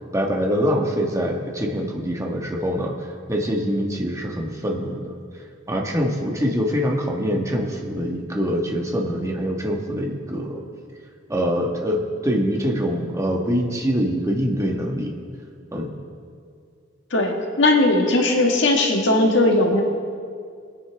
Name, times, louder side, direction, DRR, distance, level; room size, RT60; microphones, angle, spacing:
voice 1, 0.1-5.1 5.7-10.6 11.3-15.2 15.7-15.9, equal, 15° right, 0 dB, 1.4 m, -24 dB
voice 2, 17.1-19.8, left 2 dB, 70° left, 1 dB, 1.7 m, -18 dB
21.5 x 9.7 x 3.5 m, 2.2 s
head